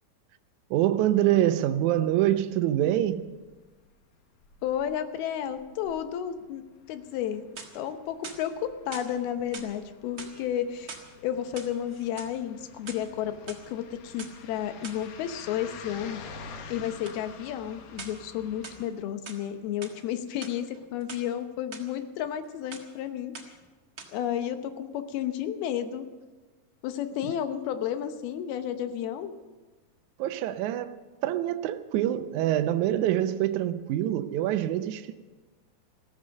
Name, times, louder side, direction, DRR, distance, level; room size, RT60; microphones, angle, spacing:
voice 1, 0.7-3.3 27.2-27.3 30.2-31.0 31.2-35.2, right 12 dB, 85° right, 1.7 m, -25 dB
sound 1, 1.8-2.1 2.4-3.6 3.8-4.1 4.4-18.9, left 5 dB, 70° left, 2.7 m, -49 dB
voice 2, 4.6-7.4 7.7-11.0 11.2-16.2 16.7-23.5 24.1-26.1 26.8-29.3, left 10 dB, 85° left, 2.9 m, -32 dB
sound 2, 7.3-7.9 8.2-9.1 9.5-9.7 10.1-11.1 11.4-12.3 12.7-13.6 14.2-14.3 14.8-15.1 17.0-17.2 18.0-18.3 18.6-19.4 19.8-20.0 20.3-21.2 21.7-21.8 22.2-22.5 22.7-23.0 23.3-23.7 24.0-24.1, right 4 dB, 50° right, 1.1 m, -44 dB
15.5 x 14.0 x 6.5 m
omnidirectional pair, 4.3 m